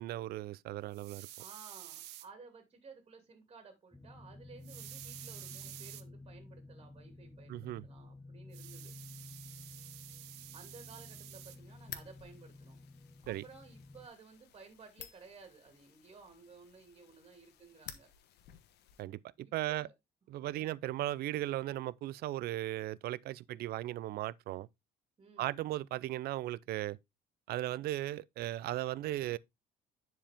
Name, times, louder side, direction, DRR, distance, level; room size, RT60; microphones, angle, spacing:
voice 1, 0.0-1.3 7.5-7.8 13.3-13.4 19.0-19.9 20.3-24.7 25.4-27.0 27.5-29.4, right 15 dB, 65° right, 0.4 m, -37 dB
sound 1, 0.9-2.3 4.6-6.0 8.5-11.6, right 14 dB, 85° right, 0.8 m, -50 dB
voice 2, 1.4-8.9 10.5-12.8 13.2-18.1 19.4-19.9 25.2-25.5, right 4 dB, 35° right, 2.5 m, -56 dB
sound 2, 3.9-14.1, left 2 dB, 5° left, 0.9 m, -52 dB
sound 3, 11.5-19.0, left 10 dB, 75° left, 1.1 m, -54 dB
10.0 x 4.7 x 3.4 m
cardioid pair, 110°, 17 cm